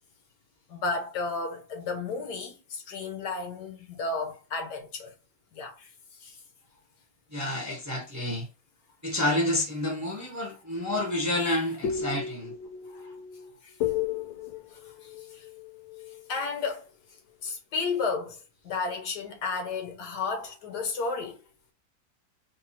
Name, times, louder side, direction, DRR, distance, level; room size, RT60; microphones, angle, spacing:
voice 1, 0.7-5.1 5.5-5.9 6.2-6.4 12.9-13.1 13.6-13.7 15.0-15.4 16.3-16.9 17.4-21.4, left 4 dB, 65° left, 1.5 m, -33 dB
voice 2, 7.3-8.5 9.0-12.5, left 1 dB, 10° right, 0.9 m, -29 dB
sound 1, 10.8-16.4, left 8 dB, 85° left, 1.3 m, -35 dB
4.0 x 2.6 x 4.2 m
omnidirectional pair, 2.0 m